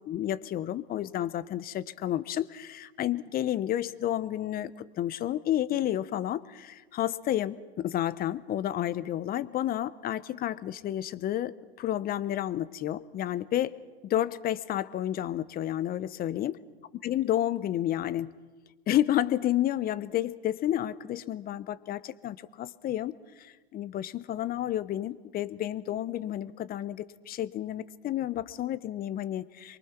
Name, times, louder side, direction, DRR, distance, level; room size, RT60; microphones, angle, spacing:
voice 1, 0.1-13.7 14.0-16.5 17.0-18.3 18.9-29.8, left 12 dB, 30° left, 16 dB, 1.0 m, -31 dB
28.0 x 23.0 x 6.1 m, 1.3 s
hypercardioid pair, 105°, 31 cm